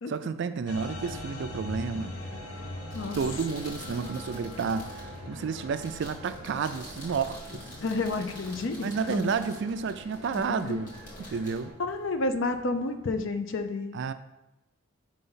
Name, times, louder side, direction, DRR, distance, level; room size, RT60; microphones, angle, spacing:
voice 1, 0.1-2.2 3.2-7.6 8.8-10.9 11.2-11.7 13.9-14.1, right 5 dB, 55° right, 11 dB, 0.3 m, -31 dB
sound 1, 0.7-13.2, left 1 dB, 90° left, 0.9 m, -43 dB
sound 2, 1.8-11.7, equal, 15° left, 1.3 m, -49 dB
sound 3, 2.8-12.6, left 1 dB, 40° left, 1.9 m, -48 dB
voice 2, 7.8-9.3 10.3-10.7 11.8-13.9, left 3 dB, 60° left, 8 dB, 0.5 m, -30 dB
5.4 x 3.4 x 5.6 m, 0.96 s
head